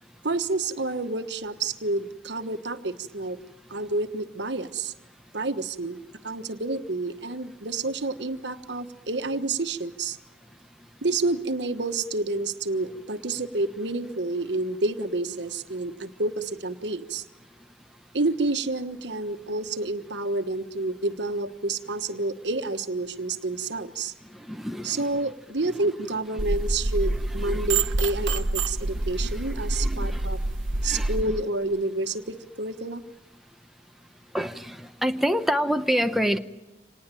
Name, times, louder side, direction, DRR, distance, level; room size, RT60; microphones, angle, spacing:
voice 1, 0.2-3.4 3.7-4.9 5.3-6.0 6.2-10.2 11.0-17.2 18.1-24.1 24.8-30.4 30.8-33.0, right 2 dB, 65° right, 9 dB, 1.3 m, -29 dB
voice 2, 24.5-25.0 27.5-27.6 29.8-30.2 30.8-31.1 34.3-34.8 35.0-36.4, equal, ahead, 6 dB, 0.8 m, -26 dB
sound 1, 26.4-31.2, right 2 dB, 85° right, 1.3 m, -27 dB
26.0 x 19.0 x 9.0 m, 1.1 s
head